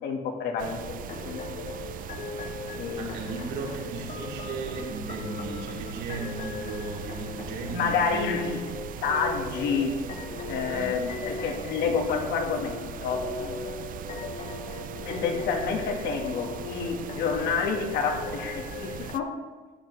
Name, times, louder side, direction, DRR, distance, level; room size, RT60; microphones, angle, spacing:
voice 1, 0.0-0.8 1.2-1.4 2.8-3.1 7.7-8.6 9.0-9.9 10.5-13.6 15.0-19.3, left 5 dB, 80° left, 3 dB, 1.7 m, -29 dB
sound 1, 0.6-19.2, right 10 dB, 55° right, 0.5 m, -40 dB
sound 2, 0.8-19.1, left 5 dB, 40° left, 0.8 m, -39 dB
voice 2, 2.9-8.3 10.7-11.0 14.9-15.3, right 3 dB, 80° right, -2 dB, 2.8 m, -36 dB
14.5 x 10.0 x 3.3 m, 1.3 s
cardioid pair, 110°, 17 cm